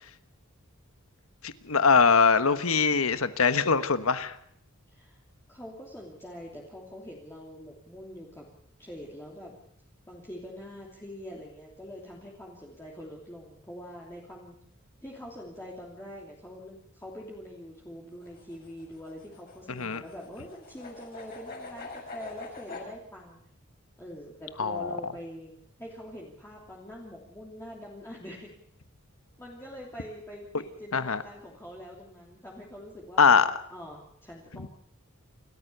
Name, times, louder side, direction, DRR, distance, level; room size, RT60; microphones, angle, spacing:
voice 1, 1.4-4.3 19.8-20.0 24.6-24.9 30.9-31.2 33.2-33.5, left 5 dB, 80° left, 11 dB, 1.3 m, -22 dB
voice 2, 5.5-8.5 8.8-9.5 10.1-14.5 15.0-23.4 24.0-25.5 25.8-28.5 29.4-33.3 33.7-34.7, equal, 10° left, -4 dB, 3.0 m, -44 dB
sound 1, 18.1-22.9, left 3 dB, 45° left, 7.3 m, -44 dB
28.0 x 14.0 x 6.8 m, 0.68 s
head